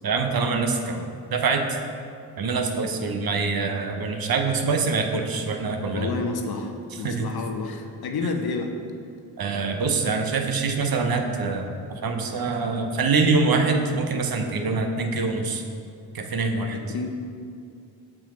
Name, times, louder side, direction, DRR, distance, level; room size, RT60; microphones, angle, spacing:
voice 1, 0.0-1.8 2.4-6.1 7.0-7.3 9.4-15.6 16.1-16.8, right 4 dB, 45° right, 4 dB, 0.8 m, -25 dB
voice 2, 5.9-8.7 16.7-17.2, left 4 dB, 50° left, 4 dB, 0.9 m, -30 dB
6.1 x 4.4 x 5.1 m, 2.4 s
hypercardioid pair, 45°, 50 cm